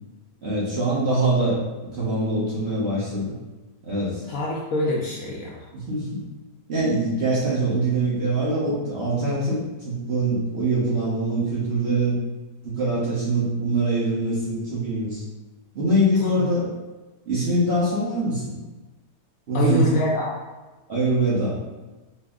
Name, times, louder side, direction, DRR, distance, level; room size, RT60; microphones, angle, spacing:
voice 1, 0.4-3.3 3.8-4.2 5.7-6.2 6.7-12.2 12.6-15.2 15.7-16.7 17.3-18.6 19.5-19.9 20.9-21.6, right 2 dB, 50° right, -7 dB, 0.9 m, -23 dB
voice 2, 4.3-5.6 16.2-16.5 19.5-20.3, left 1 dB, 70° left, -4 dB, 0.9 m, -25 dB
4.3 x 2.0 x 3.5 m, 1.2 s
omnidirectional pair, 1.8 m